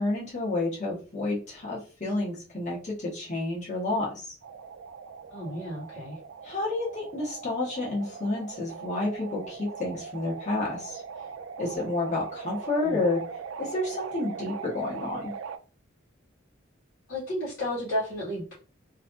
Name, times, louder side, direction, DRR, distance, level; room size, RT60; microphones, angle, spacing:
voice 1, 0.0-4.3 6.4-11.0 11.6-13.2 13.6-15.3, left 2 dB, 35° left, -5 dB, 1.4 m, -30 dB
sound 1, 4.4-15.6, right 6 dB, 70° right, 0.4 m, -40 dB
voice 2, 5.3-6.2 12.8-13.0 17.1-18.5, left 1 dB, 80° left, -8 dB, 1.8 m, -32 dB
3.3 x 3.1 x 2.6 m, 0.36 s
head